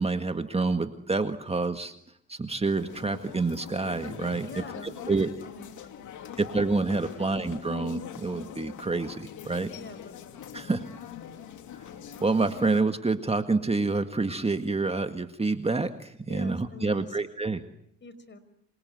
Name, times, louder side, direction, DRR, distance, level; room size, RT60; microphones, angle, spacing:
voice 1, 0.0-1.9 2.3-4.5 5.1-5.3 6.4-9.7 10.5-10.9 12.2-17.6, right 3 dB, 20° right, 7 dB, 1.8 m, -27 dB
sound 1, 2.8-12.8, left 9 dB, 75° left, 2.9 m, -43 dB
voice 2, 4.4-5.1 5.4-6.4 7.0-7.3 9.7-10.8 16.3-17.2 18.0-18.4, left 3 dB, 40° left, 13 dB, 5.5 m, -46 dB
27.5 x 27.5 x 7.8 m, 0.68 s
cardioid pair, 90°, 30 cm